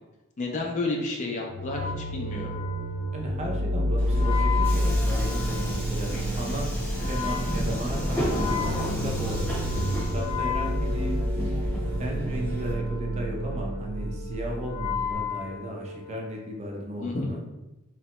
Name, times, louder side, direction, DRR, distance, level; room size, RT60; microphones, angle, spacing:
voice 1, 0.4-2.6 17.0-17.3, left 2 dB, 35° left, 0 dB, 0.4 m, -31 dB
sound 1, 1.5-15.1, equal, 75° right, 0.6 m, -29 dB
Wind instrument woodwind instrument, 1.6-16.3, left 6 dB, 85° left, 0.8 m, -36 dB
voice 2, 3.1-6.7 7.1-11.7 12.0-17.4, equal, 30° right, 0 dB, 0.4 m, -36 dB
Subway metro underground, 4.0-12.7, equal, 10° left, 1.0 m, -32 dB
3.1 x 2.1 x 2.8 m, 0.99 s
head